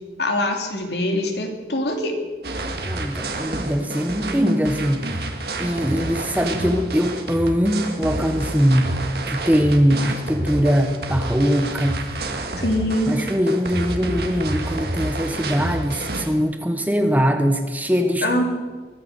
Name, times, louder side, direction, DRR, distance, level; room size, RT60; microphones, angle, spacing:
voice 1, 0.2-2.2 12.6-13.1 18.2-18.4, left 1 dB, 70° left, 3 dB, 2.7 m, -23 dB
sound 1, 2.4-16.3, right 2 dB, 65° right, 1.8 m, -29 dB
voice 2, 2.9-5.1 5.6-9.0 9.3-12.1 13.1-18.4, equal, 10° right, 6 dB, 1.1 m, -21 dB
22.5 x 9.5 x 6.7 m, 1.3 s
head